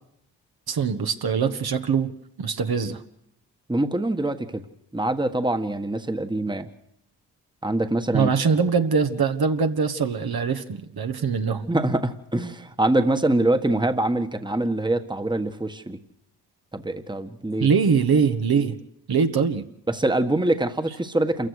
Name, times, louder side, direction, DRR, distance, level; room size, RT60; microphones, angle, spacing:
voice 1, 0.7-2.1 2.4-3.0 8.1-11.6 17.6-18.8 19.1-19.7, right 6 dB, 60° right, 6 dB, 1.6 m, -22 dB
voice 2, 3.7-4.6 4.9-6.7 7.6-8.3 11.7-16.0 16.7-17.7 19.9-21.5, right 1 dB, 10° right, 8 dB, 1.5 m, -24 dB
27.5 x 15.5 x 6.5 m, 0.80 s
supercardioid pair, 45°, 42 cm